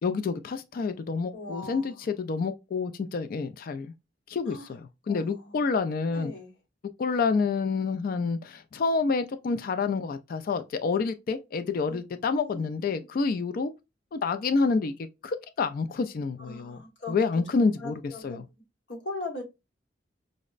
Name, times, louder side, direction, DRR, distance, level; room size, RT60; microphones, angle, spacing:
voice 1, 0.0-3.9 4.3-4.8 5.1-6.3 7.0-13.7 14.1-14.9 15.2-16.8 17.1-17.9 18.2-18.4, left 4 dB, 50° left, 0.3 m, -28 dB
voice 2, 1.3-2.0 4.5-4.7 5.1-5.6 6.1-6.5 11.9-12.0 12.4-13.1 16.4-17.3 17.6-18.6 18.9-19.4, left 2 dB, 70° left, 1.1 m, -40 dB
5.1 x 2.0 x 2.3 m
head